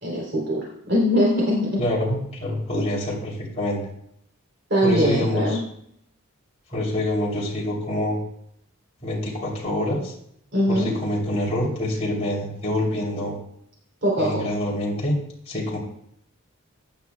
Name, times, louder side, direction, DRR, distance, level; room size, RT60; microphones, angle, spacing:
voice 1, 0.0-1.7 2.7-2.9 4.7-5.6 10.5-10.9 14.0-14.4, equal, 50° right, -4 dB, 3.3 m, -22 dB
voice 2, 1.8-3.8 4.8-5.6 6.7-8.2 9.0-10.1 10.7-13.4 14.2-15.2 15.5-15.8, left 1 dB, 30° left, -4 dB, 2.9 m, -26 dB
15.0 x 9.7 x 2.3 m, 0.72 s
head